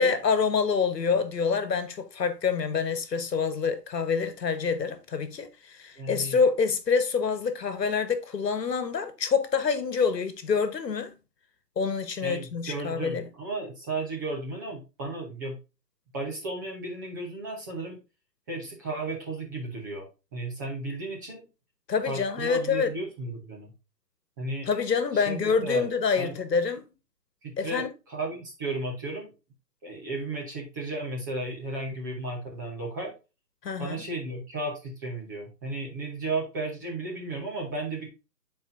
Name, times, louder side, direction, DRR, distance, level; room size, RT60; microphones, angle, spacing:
voice 1, 0.0-11.1 11.8-13.2 21.9-22.9 24.7-26.9 27.6-27.9 33.6-34.0, left 5 dB, 75° left, 1.4 m, -26 dB
voice 2, 6.0-6.4 12.2-15.6 16.1-18.0 18.5-20.0 20.3-21.5 22.0-23.7 24.4-24.7 25.1-25.9 26.2-26.4 27.4-29.3 29.8-33.1 33.8-38.1, right 2 dB, 10° right, 0.8 m, -34 dB
10.5 x 4.4 x 2.6 m
hypercardioid pair, 155°, 50 cm